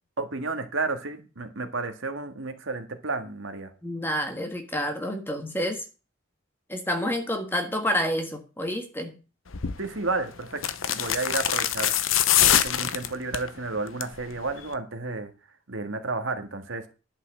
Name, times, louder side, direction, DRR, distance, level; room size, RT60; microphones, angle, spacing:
voice 1, 0.2-3.7 9.8-10.6 10.9-11.9 12.6-15.3 15.7-16.8, right 3 dB, 75° right, 7 dB, 1.8 m, -31 dB
voice 2, 3.8-5.8 6.7-9.1, equal, 10° left, 5 dB, 1.6 m, -29 dB
sound 1, 9.5-9.8 10.6-13.5 13.9-14.2 14.5-14.6, left 10 dB, 85° left, 0.9 m, -23 dB
11.0 x 5.7 x 7.6 m, 0.33 s
head